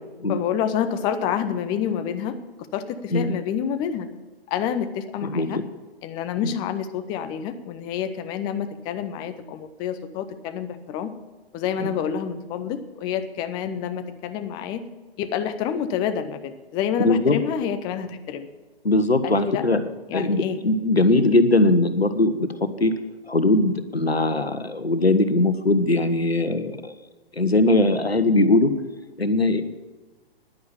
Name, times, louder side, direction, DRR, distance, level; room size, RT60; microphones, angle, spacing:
voice 1, 0.3-2.4 2.7-4.1 4.5-5.6 6.0-11.1 11.5-14.8 15.2-18.5 19.2-19.7 20.1-20.6 21.1-21.3, left 8 dB, 15° left, 10 dB, 0.6 m, -28 dB
voice 2, 5.3-5.6 11.8-11.9 17.0-17.4 18.8-19.8 20.1-23.0 23.3-26.9 27.4-28.7 29.2-29.6, left 2 dB, 85° left, 10 dB, 1.3 m, -20 dB
10.5 x 9.4 x 7.3 m, 1.3 s
figure-of-eight pair, 120°, 30 cm